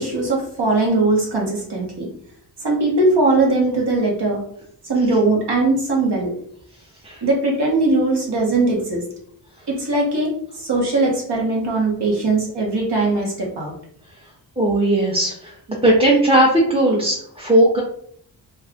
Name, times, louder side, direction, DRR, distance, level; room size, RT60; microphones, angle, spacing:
voice 1, 0.0-2.1 2.6-4.4 4.9-6.3 7.2-9.0 9.7-13.7, right 2 dB, 70° right, -2 dB, 1.3 m, -20 dB
voice 2, 14.6-15.5 15.8-17.8, right 1 dB, 15° right, -4 dB, 0.7 m, -17 dB
2.6 x 2.3 x 3.5 m, 0.65 s
cardioid pair, 55°, 42 cm